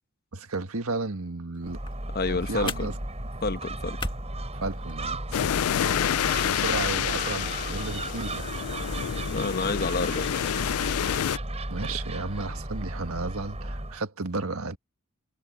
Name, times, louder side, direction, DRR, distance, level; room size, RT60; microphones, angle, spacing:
voice 1, 0.3-1.8 2.3-2.9 4.6-5.6 6.4-8.5 11.7-14.8, right 3 dB, 75° right, 1.5 m, -33 dB
sound 1, 1.5-5.5, left 3 dB, 25° left, 1.8 m, -40 dB
Gull seagull, 1.6-14.0, right 1 dB, 30° right, 5.5 m, -35 dB
voice 2, 2.1-2.9 3.4-4.1 5.9-6.2 9.3-10.5, left 3 dB, 45° left, 1.1 m, -29 dB
sound 2, 5.3-11.4, left 10 dB, 90° left, 0.4 m, -28 dB
head